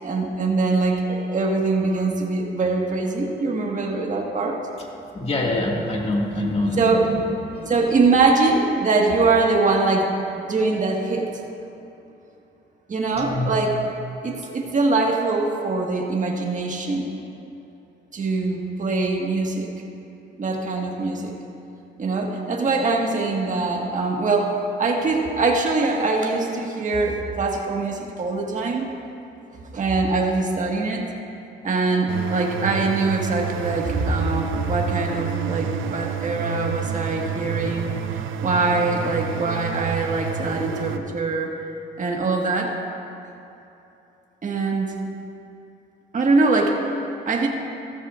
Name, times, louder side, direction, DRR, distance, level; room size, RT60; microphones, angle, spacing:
voice 1, 0.0-4.6 6.8-7.1 7.7-10.1 10.4-11.3 12.9-13.8 14.2-17.1 18.1-19.7 20.4-21.4 22.0-28.9 29.7-31.1 31.6-37.9 38.4-41.5 42.0-42.7 44.4-44.9 46.1-46.8 47.2-47.5, right 3 dB, 40° right, 0 dB, 1.6 m, -23 dB
voice 2, 5.1-8.0 13.1-13.5 14.3-14.5, left 1 dB, 30° left, -1 dB, 2.0 m, -26 dB
sound 1, 32.1-41.0, right 6 dB, 80° right, 0.6 m, -29 dB
15.0 x 13.5 x 2.5 m, 2.8 s
cardioid pair, 90°, 20 cm